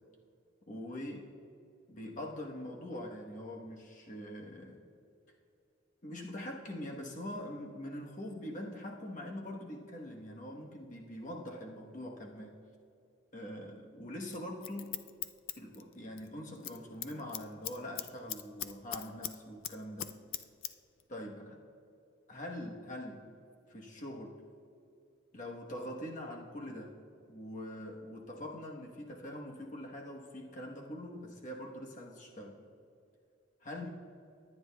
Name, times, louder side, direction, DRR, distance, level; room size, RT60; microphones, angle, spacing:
voice 1, 0.7-1.3 1.9-4.8 6.0-12.6 13.3-15.0 15.5-20.2 21.1-21.6 22.3-23.3 23.7-24.4 25.3-26.9 27.3-32.6 33.6-33.9, left 1 dB, 40° left, -1 dB, 1.2 m, -43 dB
Scissors, 14.3-16.3 16.5-16.8 17.0-19.3 19.6-20.7 21.0-21.1, left 12 dB, 80° left, 0.4 m, -40 dB
20.5 x 9.3 x 2.3 m, 2.6 s
head